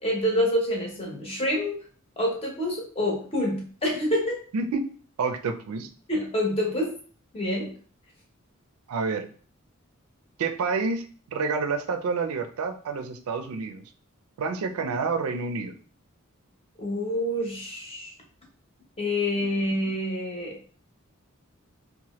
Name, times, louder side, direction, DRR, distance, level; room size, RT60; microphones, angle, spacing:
voice 1, 0.0-1.8 2.2-4.4 6.1-7.0 7.3-7.7 16.8-18.1 19.0-20.6, left 1 dB, 30° left, -1 dB, 0.8 m, -27 dB
voice 2, 4.5-4.9 5.2-5.9 8.9-9.3 10.4-13.8 14.4-15.7, right 4 dB, 85° right, 7 dB, 0.4 m, -28 dB
2.8 x 2.1 x 3.0 m, 0.42 s
head